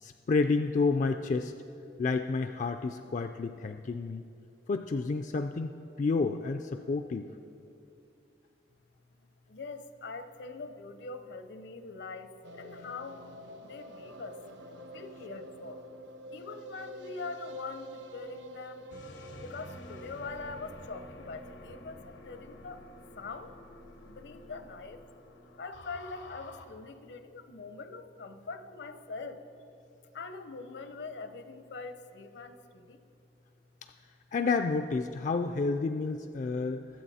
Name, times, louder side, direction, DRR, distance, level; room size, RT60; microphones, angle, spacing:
voice 1, 0.0-1.5 2.0-4.2 4.7-5.7 6.0-7.3 34.3-36.8, left 4 dB, 45° left, 7 dB, 0.3 m, -30 dB
voice 2, 9.5-13.3 13.6-14.5 14.9-15.8 16.3-18.9 19.4-22.8 23.2-23.6 24.0-25.0 25.6-29.5 30.1-33.0 36.8-36.9, left 3 dB, 70° left, 10 dB, 0.8 m, -43 dB
sound 1, 12.4-24.6 24.9-25.0 25.2-25.3 25.5-25.6, right 1 dB, 75° right, 0.8 m, -48 dB
sound 2, 18.9-26.6, left 2 dB, 90° left, 1.1 m, -49 dB
22.0 x 7.8 x 4.2 m, 2.6 s
head